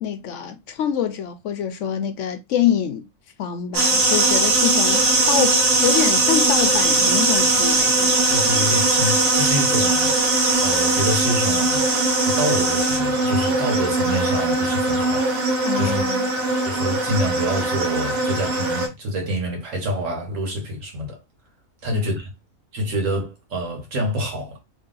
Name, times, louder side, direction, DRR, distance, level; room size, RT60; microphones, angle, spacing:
voice 1, 0.0-3.1 3.4-5.0 5.3-8.2 15.7-16.3 21.9-22.0, left 9 dB, 70° left, 0.8 m, -25 dB
sound 1, 3.7-18.9, right 2 dB, 85° right, 1.6 m, -20 dB
voice 2, 8.3-10.3 10.6-11.9 12.2-15.3 15.7-16.0 16.6-21.2 21.8-22.3 22.7-24.6, equal, 65° right, 1.6 m, -27 dB
3.3 x 2.7 x 3.8 m
omnidirectional pair, 1.4 m